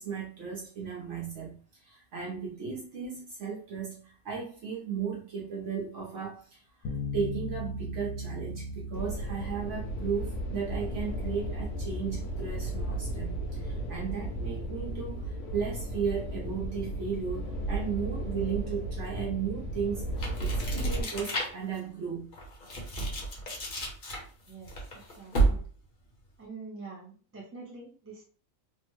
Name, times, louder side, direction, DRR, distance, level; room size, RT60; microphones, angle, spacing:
voice 1, 0.0-22.3, right 6 dB, 65° right, -4 dB, 1.1 m, -35 dB
sound 1, 6.9-17.7, left 1 dB, 70° left, 0.9 m, -41 dB
sound 2, 8.9-21.0, right 1 dB, 90° left, 1.2 m, -35 dB
sound 3, 20.1-21.8 22.3-25.8, right 3 dB, 40° left, 1.0 m, -31 dB
voice 2, 25.2-25.6 26.4-28.2, right 4 dB, 15° right, -3 dB, 0.5 m, -45 dB
3.4 x 2.1 x 3.0 m, 0.40 s
omnidirectional pair, 1.4 m